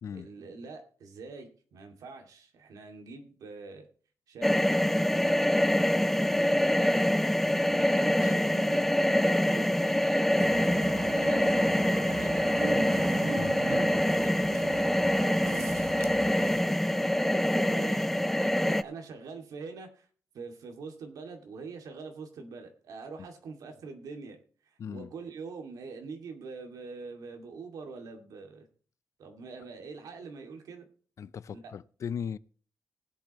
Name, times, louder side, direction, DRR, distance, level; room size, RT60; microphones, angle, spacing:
voice 1, 0.1-3.9 4.3-5.4 5.7-12.9 13.6-15.1 16.6-20.1 20.3-24.4 24.9-28.7 29.2-30.9 31.5-31.7, right 4 dB, 85° right, 2.4 m, -44 dB
sound 1, 4.4-18.8, left 1 dB, 5° left, 0.4 m, -25 dB
sound 2, 10.4-16.6, right 6 dB, 55° right, 1.0 m, -39 dB
voice 2, 24.8-25.1 31.2-32.4, left 7 dB, 55° left, 0.5 m, -38 dB
19.5 x 8.3 x 3.1 m
wide cardioid pair, 125°, 6 cm